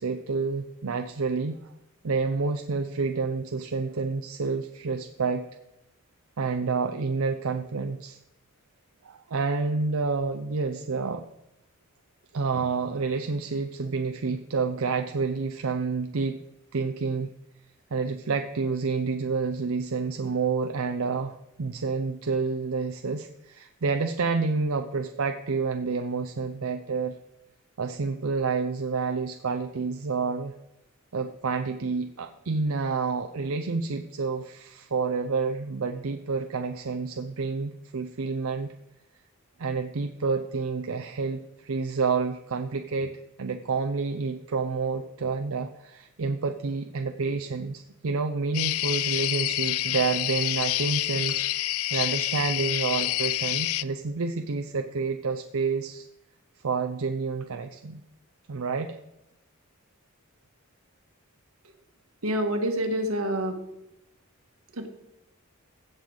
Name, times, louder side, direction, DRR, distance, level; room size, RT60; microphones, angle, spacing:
voice 1, 0.0-1.7 2.0-5.4 6.4-8.2 9.0-11.3 12.3-16.4 16.7-17.3 17.9-27.2 27.8-30.5 31.1-38.7 39.6-43.1 43.4-56.1 56.6-58.0 58.5-59.0, right 4 dB, 70° right, 6 dB, 0.6 m, -29 dB
sound 1, 48.5-53.8, left 15 dB, 75° left, 0.4 m, -28 dB
voice 2, 62.2-63.6 64.7-64.9, equal, 90° right, 5 dB, 1.6 m, -27 dB
16.0 x 6.6 x 3.9 m, 0.87 s
head